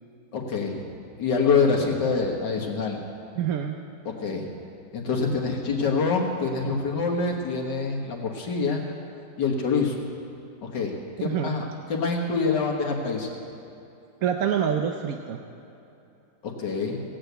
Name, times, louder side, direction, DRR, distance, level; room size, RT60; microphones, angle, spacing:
voice 1, 0.3-0.8 1.2-3.0 4.2-4.5 4.9-8.8 9.4-10.1 10.6-11.6 11.9-13.3 16.4-17.0, left 4 dB, 75° left, -1 dB, 2.1 m, -25 dB
voice 2, 3.3-3.8 11.2-11.6 14.2-15.4, right 8 dB, 65° right, 5 dB, 1.0 m, -26 dB
17.0 x 8.8 x 8.1 m, 2.8 s
omnidirectional pair, 1.9 m